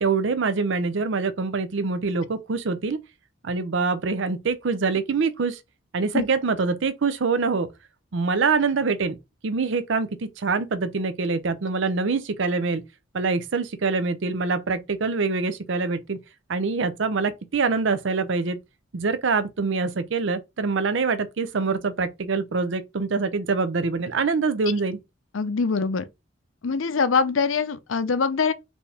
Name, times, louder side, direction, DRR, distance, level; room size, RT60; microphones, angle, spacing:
voice 1, 0.0-3.0 3.4-5.6 5.9-7.7 8.1-9.2 9.4-12.8 13.1-16.2 16.5-18.6 18.9-25.0, right 4 dB, 65° right, 0.6 m, -25 dB
voice 2, 25.3-26.1 26.6-28.5, left 5 dB, 90° left, 0.6 m, -23 dB
4.4 x 2.8 x 3.4 m
head